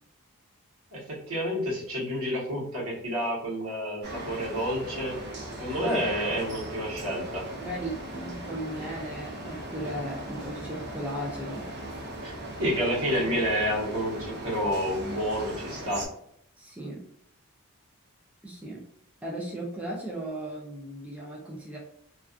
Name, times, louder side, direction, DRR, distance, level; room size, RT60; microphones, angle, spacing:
voice 1, 0.9-5.1 5.6-7.5 12.2-12.3 12.6-16.1, equal, 80° right, -4 dB, 1.1 m, -29 dB
sound 1, 4.0-16.1, right 1 dB, 50° right, 0.6 m, -38 dB
voice 2, 5.8-6.1 7.6-11.7 13.0-13.4 16.6-17.1 18.4-18.9 19.2-21.8, right 1 dB, 5° right, -3 dB, 0.3 m, -37 dB
2.4 x 2.3 x 2.4 m, 0.69 s
head